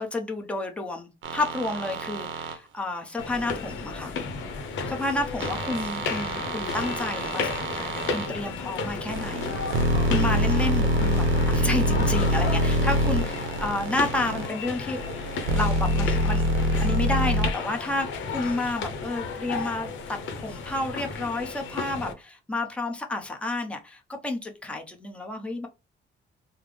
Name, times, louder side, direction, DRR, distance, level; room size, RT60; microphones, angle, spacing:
voice 1, 0.0-4.1 4.9-15.0 15.5-16.5 16.8-25.7, left 2 dB, 5° left, 0.7 m, -31 dB
sound 1, 1.2-2.6 5.4-8.3 9.1-14.5 15.0-17.5, equal, 75° right, 0.7 m, -26 dB
sound 2, 3.2-22.1, left 5 dB, 70° left, 0.7 m, -33 dB
3.3 x 2.0 x 3.2 m
cardioid pair, 90°, 20 cm